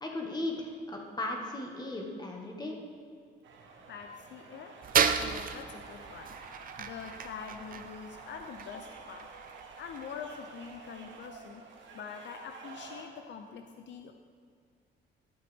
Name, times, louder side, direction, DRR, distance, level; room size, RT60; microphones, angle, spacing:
voice 1, 0.0-2.7, left 2 dB, 20° left, 0 dB, 1.7 m, -36 dB
sound 1, 3.4-13.0, right 4 dB, 70° right, 1.4 m, -50 dB
voice 2, 3.9-4.8 5.1-9.3 9.8-11.6 11.9-14.1, left 6 dB, 65° left, 5 dB, 0.6 m, -45 dB
sound 2, 4.8-11.5, right 7 dB, 45° right, 0.6 m, -34 dB
12.0 x 7.8 x 3.5 m, 2.3 s
cardioid pair, 90°, 20 cm